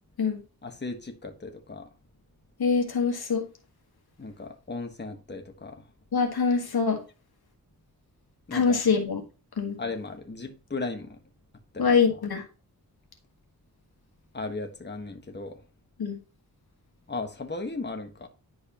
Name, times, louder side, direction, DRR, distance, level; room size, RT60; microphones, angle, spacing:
voice 1, 0.6-1.9 4.2-5.9 8.5-8.8 9.8-11.2 11.7-11.9 14.3-15.6 17.1-18.3, left 3 dB, 25° left, 1.4 m, -36 dB
voice 2, 2.6-3.5 6.1-7.0 8.5-9.2 9.6-9.8 11.8-12.4 16.0-16.2, left 5 dB, 75° left, 1.6 m, -24 dB
10.5 x 4.7 x 2.9 m
wide cardioid pair, 70°, 38 cm